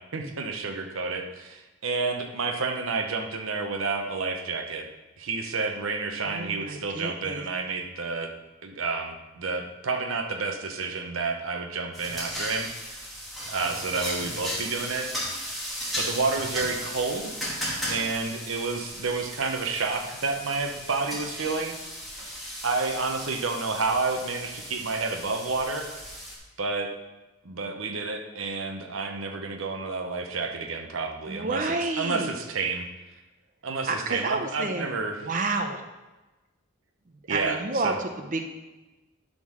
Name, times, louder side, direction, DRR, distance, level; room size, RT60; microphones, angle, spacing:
voice 1, 0.0-4.9 5.2-8.3 8.6-13.0 13.5-15.1 16.0-17.4 17.9-21.7 22.6-25.9 26.6-26.9 27.4-32.9 33.6-35.3 37.3-38.0, right 4 dB, 65° right, 4 dB, 0.9 m, -30 dB
voice 2, 6.3-7.4 31.3-32.3 33.9-35.0 35.2-35.8 37.3-38.4, right 3 dB, 40° right, 5 dB, 0.7 m, -30 dB
Frying onion, 11.9-26.3, equal, ahead, 2.3 m, -36 dB
11.0 x 3.9 x 6.4 m, 1.1 s
head